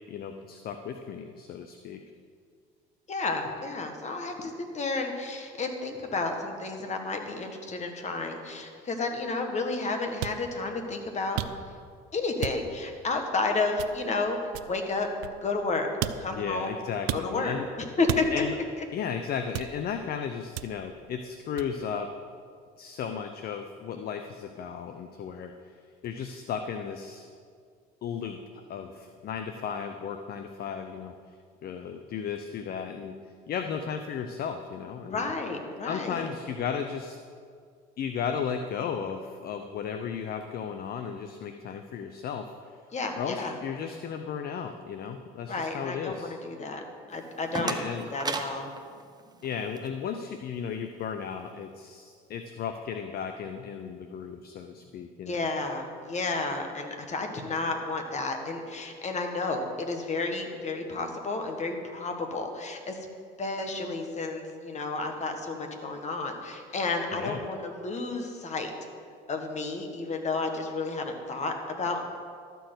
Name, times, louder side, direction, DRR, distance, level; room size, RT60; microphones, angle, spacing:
voice 1, 0.1-2.0 16.3-17.6 18.3-18.5 18.9-22.1 22.8-25.7 26.0-27.3 28.0-28.4 28.7-31.1 31.6-33.1 33.5-35.2 35.8-37.2 38.0-42.4 43.2-46.3 47.6-48.0 49.4-55.5 67.1-67.4, left 7 dB, 50° left, 7 dB, 0.7 m, -35 dB
voice 2, 3.1-11.4 12.1-15.1 15.4-15.9 16.2-16.8 17.1-17.6 18.0-18.4 35.1-36.3 42.9-43.5 45.5-46.8 47.1-48.7 55.3-63.0 63.4-68.7 69.3-72.0, left 3 dB, 35° left, 4 dB, 1.6 m, -31 dB
sound 1, 10.2-10.4 11.4-11.8 12.4-12.8 13.8-14.1 14.5-15.7 16.0-16.5 17.1-17.3 18.1-18.6 19.5-20.0 20.6-20.9 21.6-21.8, right 12 dB, 85° right, 0.4 m, -34 dB
sound 2, 47.1-49.9, right 4 dB, 20° right, 0.8 m, -36 dB
12.5 x 4.6 x 7.9 m, 2.1 s
supercardioid pair, 80°, 20 cm